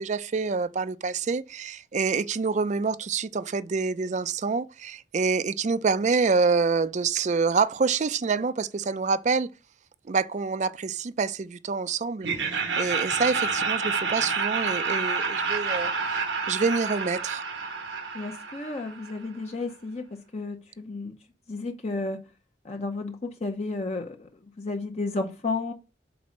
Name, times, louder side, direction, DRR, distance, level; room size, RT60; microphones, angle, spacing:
voice 1, 0.0-9.5 10.1-12.3 12.8-17.5, right 4 dB, 40° right, 0.4 m, -26 dB
Laughter, 12.2-19.2, right 5 dB, 85° right, 1.2 m, -29 dB
voice 2, 18.1-21.1 21.5-22.2 22.6-25.7, left 3 dB, 40° left, 0.7 m, -32 dB
6.0 x 4.1 x 6.3 m
head